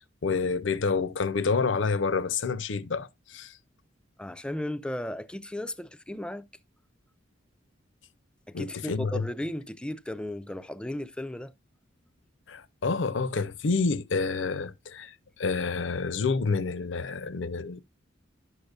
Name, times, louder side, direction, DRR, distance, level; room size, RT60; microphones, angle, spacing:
voice 1, 0.0-3.5 8.5-9.2 12.5-17.8, left 4 dB, 70° left, 0.6 m, -28 dB
voice 2, 4.2-6.5 8.5-11.5, left 1 dB, 5° left, 0.4 m, -35 dB
11.0 x 6.6 x 2.3 m
head